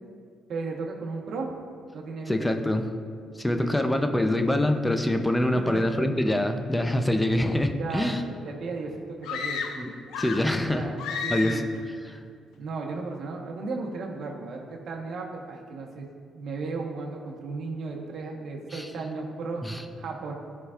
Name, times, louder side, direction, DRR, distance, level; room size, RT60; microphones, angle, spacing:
voice 1, 0.5-1.5 1.9-2.5 3.5-4.1 5.4-5.9 7.8-9.6 10.7-11.7 12.6-16.1 16.3-19.6 20.0-20.3, right 3 dB, 65° right, 0 dB, 1.2 m, -35 dB
voice 2, 2.3-2.8 3.4-8.2 9.8-9.9 10.2-10.8 11.3-11.6 12.1-12.2 18.7-18.9 19.6-19.8, left 1 dB, 10° left, 6 dB, 0.6 m, -25 dB
sound 1, 9.2-10.6 11.0-11.8, left 5 dB, 85° left, 0.5 m, -32 dB
13.0 x 4.8 x 2.5 m, 2.2 s
cardioid pair, 90°, 0 cm